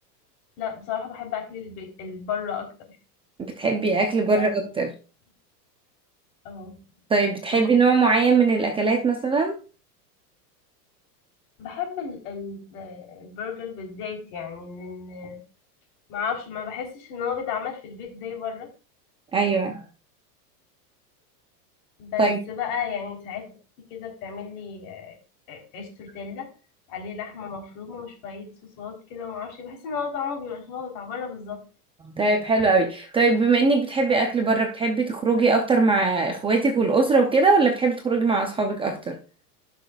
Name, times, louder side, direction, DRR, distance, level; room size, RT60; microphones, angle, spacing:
voice 1, 0.6-3.0 4.2-4.7 6.4-6.8 7.5-7.8 11.6-15.4 16.1-18.7 22.0-23.5 23.9-25.2 25.5-26.5 26.9-28.5 28.8-31.6, left 7 dB, 55° left, 2 dB, 3.8 m, -34 dB
voice 2, 3.4-4.9 7.1-9.5 19.3-19.8 22.2-22.4 32.0-39.2, right 4 dB, 10° right, 3 dB, 0.6 m, -21 dB
16.5 x 6.1 x 2.4 m, 0.34 s
supercardioid pair, 145°, 49 cm